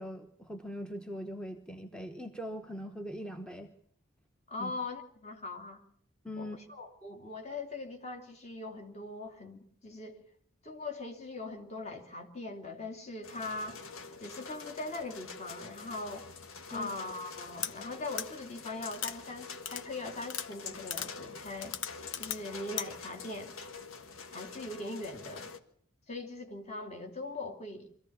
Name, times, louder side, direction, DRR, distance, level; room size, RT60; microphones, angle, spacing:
voice 1, 0.0-3.7 4.6-4.7 6.2-6.6 16.7-16.9, equal, 5° left, 5 dB, 1.0 m, -41 dB
voice 2, 4.5-5.8 6.4-10.2 10.6-13.8 14.2-16.3 16.7-21.8 22.2-23.5 24.3-25.5 26.1-27.9, left 2 dB, 30° left, 4 dB, 2.8 m, -41 dB
sound 1, 13.2-25.6, left 4 dB, 85° left, 1.6 m, -46 dB
sound 2, 17.6-17.7 18.2-18.3 18.9-19.1 19.7-19.8 20.3-20.5 20.9-21.1 21.6-22.4 22.8-22.9, left 9 dB, 60° left, 1.0 m, -36 dB
23.5 x 15.0 x 8.6 m, 0.65 s
head